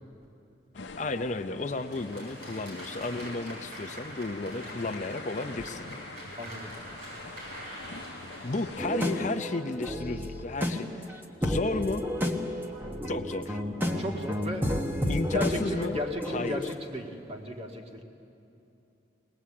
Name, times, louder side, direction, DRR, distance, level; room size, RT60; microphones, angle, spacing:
sound 1, 0.7-9.4, left 3 dB, 80° left, 0.8 m, -45 dB
voice 1, 1.0-5.9 8.4-12.1 13.1-13.6 15.1-16.0 16.3-16.7, left 2 dB, 40° left, 7 dB, 0.6 m, -33 dB
Applause, 1.6-9.7, equal, 55° right, 7.2 m, -44 dB
voice 2, 6.4-6.7 14.0-14.8 15.0-18.0, left 1 dB, 35° right, 1 dB, 1.8 m, -35 dB
sound 2, 8.8-16.7, left 1 dB, 10° right, 1.2 m, -31 dB
21.5 x 19.5 x 8.5 m, 2.9 s
head